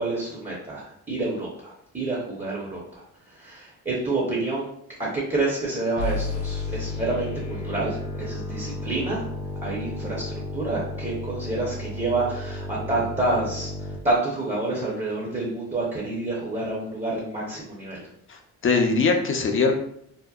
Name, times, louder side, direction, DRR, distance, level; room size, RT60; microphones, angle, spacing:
voice 1, 0.0-4.7 5.0-9.2 9.6-18.0, right 2 dB, 20° right, -4 dB, 0.8 m, -28 dB
sound 1, 6.0-14.0, left 2 dB, 80° left, 0.7 m, -32 dB
voice 2, 18.3-19.7, left 4 dB, 35° left, 3 dB, 0.5 m, -22 dB
2.7 x 2.0 x 2.3 m, 0.71 s
supercardioid pair, 65°, 34 cm